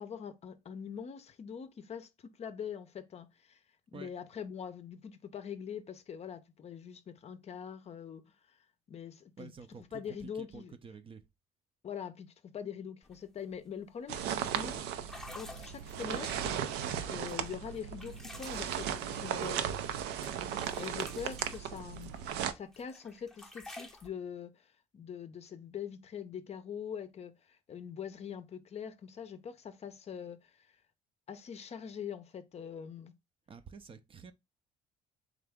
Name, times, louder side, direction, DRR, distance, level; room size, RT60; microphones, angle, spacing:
voice 1, 0.0-3.6 3.9-8.2 8.5-8.6 8.9-9.5 9.9-10.8 11.8-14.8 15.3-16.6 17.0-19.6 20.8-30.7 31.3-33.1, left 7 dB, 40° left, 0.6 m, -43 dB
voice 2, 9.4-11.2 33.5-34.3, right 5 dB, 30° right, 0.5 m, -49 dB
sound 1, 13.0-13.2 13.5-13.8 14.4-14.5 15.0-16.7 17.3-20.0 20.2-22.3 22.7-24.1, left 1 dB, ahead, 0.7 m, -51 dB
sound 2, 14.1-22.5, right 9 dB, 85° right, 0.5 m, -36 dB
3.8 x 3.4 x 3.4 m
cardioid pair, 110°, 17 cm